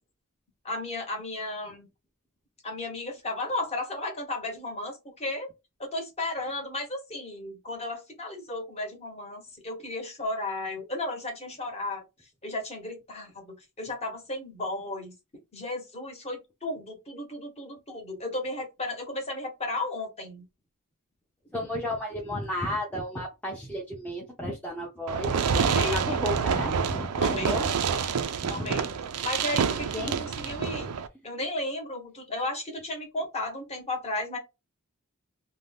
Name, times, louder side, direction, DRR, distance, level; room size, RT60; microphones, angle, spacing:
voice 1, 0.6-1.9 2.6-5.5 5.8-12.0 12.4-15.1 15.5-20.4 25.6-26.2 26.6-26.7 27.2-27.6 28.5-28.9 29.2-30.9 31.2-34.4, left 2 dB, 30° left, 1.0 m, -34 dB
voice 2, 21.5-25.5 25.9-27.7 28.4-28.9 29.9-30.2 30.6-30.8, equal, 5° left, 0.6 m, -33 dB
Fireworks, 25.1-31.1, right 6 dB, 90° right, 0.4 m, -27 dB
2.6 x 2.2 x 3.3 m
head